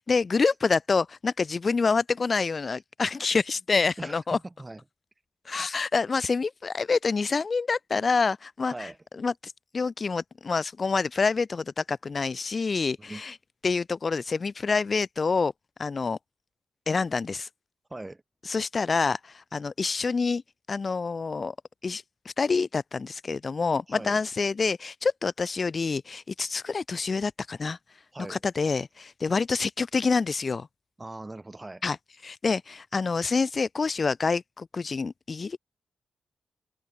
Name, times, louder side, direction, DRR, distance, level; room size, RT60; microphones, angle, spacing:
voice 1, 0.0-4.4 5.5-8.9 9.2-13.3 13.6-15.5 15.8-16.2 16.9-17.5 18.5-20.4 20.7-21.5 21.8-27.8 28.3-30.7 31.8-32.0 32.2-35.6, left 4 dB, 35° left, 0.4 m, -27 dB
voice 2, 4.0-4.8 8.7-9.0 13.0-13.2 17.9-18.2 18.8-18.9 23.9-24.2 28.1-28.4 31.0-31.8, right 2 dB, 15° right, 5.8 m, -40 dB
open air
wide cardioid pair, 110°, 0 cm